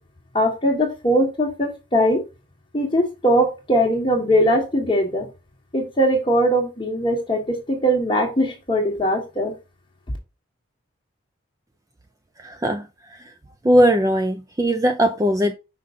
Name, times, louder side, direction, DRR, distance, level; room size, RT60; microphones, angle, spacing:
voice 1, 0.3-2.2 2.7-5.2 5.7-9.5, equal, 25° left, 1.3 m, -20 dB
voice 2, 12.4-13.3 13.6-15.5, equal, 15° right, 0.4 m, -19 dB
5.6 x 5.2 x 3.7 m
head